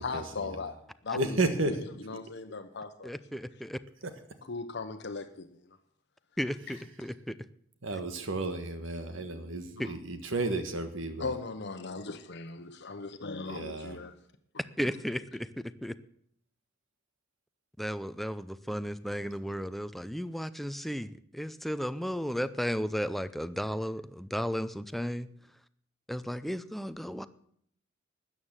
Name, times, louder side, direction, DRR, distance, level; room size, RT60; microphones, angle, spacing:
voice 1, 0.0-3.4 4.5-5.5 6.7-6.8 9.8-9.9 11.2-14.2, left 3 dB, 60° left, 7 dB, 0.9 m, -38 dB
voice 2, 1.1-1.7 7.8-11.3 13.5-14.0, right 2 dB, 75° right, 8 dB, 1.5 m, -32 dB
voice 3, 3.0-3.8 6.4-7.4 9.8-9.9 14.8-15.9 17.8-25.3 26.1-27.3, equal, ahead, 13 dB, 0.5 m, -34 dB
13.0 x 9.1 x 7.4 m, 0.66 s
head